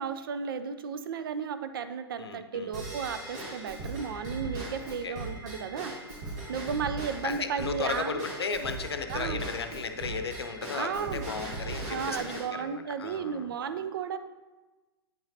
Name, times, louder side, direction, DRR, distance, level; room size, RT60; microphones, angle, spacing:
voice 1, 0.0-5.9 6.5-8.2 9.1-9.4 10.7-11.4 11.9-14.2, right 6 dB, 60° right, 10 dB, 0.5 m, -34 dB
voice 2, 2.2-2.7 5.0-5.1 7.2-13.5, left 5 dB, 75° left, 8 dB, 0.6 m, -35 dB
Drum kit / Drum / Bell, 2.7-12.4, right 2 dB, 40° right, 1.8 m, -39 dB
8.8 x 5.7 x 2.8 m, 1.2 s
figure-of-eight pair, 105°, 13 cm